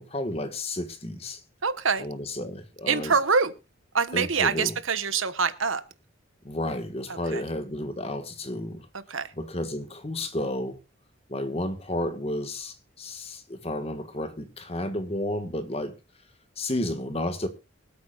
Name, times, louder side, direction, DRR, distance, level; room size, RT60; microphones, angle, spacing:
voice 1, 0.0-1.4 2.0-3.1 4.1-4.7 6.4-8.9 9.4-10.8 11.3-15.9 16.6-17.5, left 1 dB, 30° left, 1.5 m, -32 dB
voice 2, 1.6-2.1 2.9-3.5 3.9-5.8 7.1-7.4 9.1-9.3, right 5 dB, 80° right, 1.2 m, -25 dB
24.5 x 8.7 x 2.4 m
head